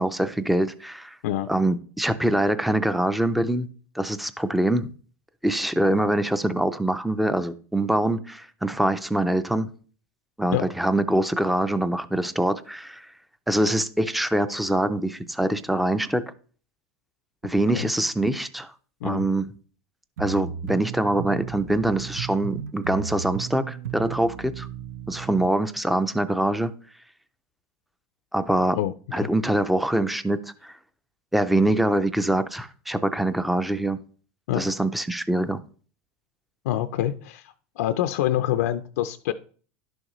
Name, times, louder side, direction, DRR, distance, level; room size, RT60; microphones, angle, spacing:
voice 1, 0.0-1.2 1.5-3.7 3.9-4.9 5.4-9.7 10.4-13.1 13.5-16.2 17.4-18.7 19.0-19.5 20.2-24.7 25.1-26.7 28.3-28.8 29.1-30.7 31.3-34.0 34.6-35.6, right 1 dB, ahead, 0.4 m, -24 dB
sound 1, 20.2-25.5, right 9 dB, 90° right, 0.6 m, -35 dB
voice 2, 36.6-39.3, left 12 dB, 85° left, 0.5 m, -26 dB
11.5 x 6.4 x 3.1 m
supercardioid pair, 165°, 8 cm